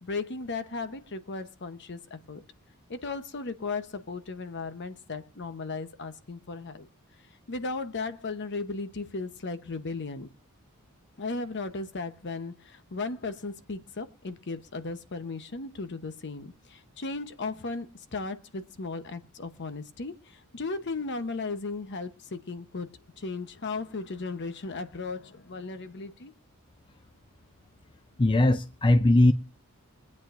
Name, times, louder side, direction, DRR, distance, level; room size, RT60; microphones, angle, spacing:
voice 1, 0.0-2.4 2.9-6.9 7.5-10.3 11.2-22.9 23.2-26.3, left 3 dB, 55° left, 0.9 m, -36 dB
voice 2, 28.2-29.3, left 1 dB, 20° left, 0.5 m, -20 dB
24.0 x 8.5 x 2.5 m
head